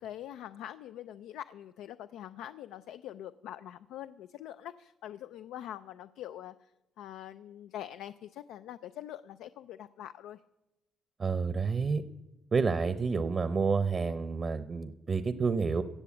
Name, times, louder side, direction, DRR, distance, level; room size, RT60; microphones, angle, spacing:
voice 1, 0.0-6.7 7.0-10.4, left 11 dB, 90° left, 12 dB, 0.4 m, -44 dB
voice 2, 11.2-12.0 12.5-15.8, right 5 dB, 40° right, 13 dB, 0.7 m, -29 dB
16.0 x 6.9 x 8.3 m, 0.99 s
cardioid pair, 90°, 0 cm